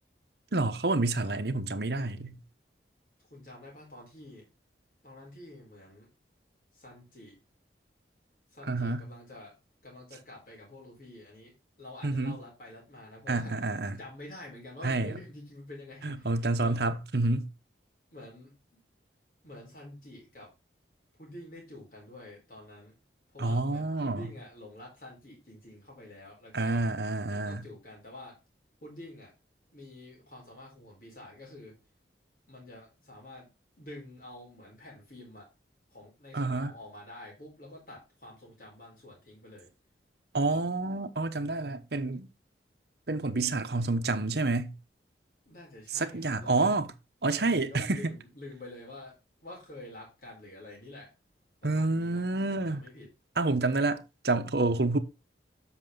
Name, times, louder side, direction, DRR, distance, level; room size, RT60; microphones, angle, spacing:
voice 1, 0.5-2.4 8.7-9.1 12.0-12.4 13.3-14.0 14.8-15.2 16.0-17.5 23.4-24.3 26.5-27.6 36.3-36.7 40.3-42.3 43.1-44.7 45.9-46.9 47.2-48.0 51.6-52.8 53.4-55.0, right 2 dB, 65° right, 0.9 m, -28 dB
voice 2, 3.3-4.5 5.0-6.1 6.7-7.4 8.5-9.6 9.8-13.7 14.0-16.8 18.1-18.5 19.4-20.5 21.2-23.0 23.3-26.8 27.3-28.4 28.8-29.3 29.7-31.8 32.5-33.5 33.8-35.5 35.9-39.7 45.5-46.8 47.3-51.1 51.6-53.1, left 1 dB, 50° left, 4.1 m, -48 dB
7.5 x 6.0 x 3.7 m
head